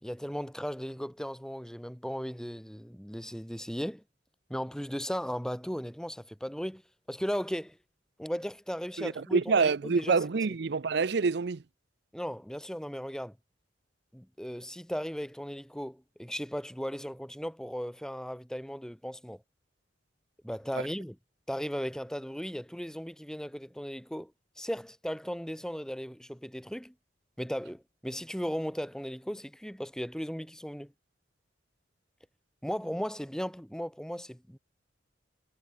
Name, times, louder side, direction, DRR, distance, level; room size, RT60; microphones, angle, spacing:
voice 1, 0.0-4.0 4.5-6.8 7.1-7.8 8.2-10.2 12.1-13.4 14.1-19.4 20.4-21.2 21.5-24.3 24.6-26.9 27.4-30.9 32.6-34.6, equal, 5° left, 2.8 m, -36 dB
voice 2, 9.0-11.6, right 4 dB, 65° right, 0.6 m, -27 dB
head